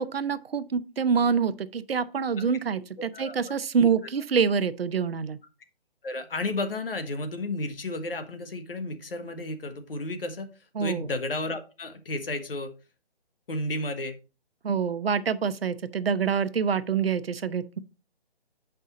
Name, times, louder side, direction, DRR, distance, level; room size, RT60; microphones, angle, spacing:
voice 1, 0.0-5.4 10.8-11.1 14.6-17.8, right 6 dB, 70° right, 0.7 m, -26 dB
voice 2, 3.0-3.4 3.8-3.9 6.0-10.5 10.8-12.7 13.5-14.2, left 2 dB, 65° left, 1.5 m, -32 dB
7.4 x 5.5 x 3.9 m
hypercardioid pair, 160°, 31 cm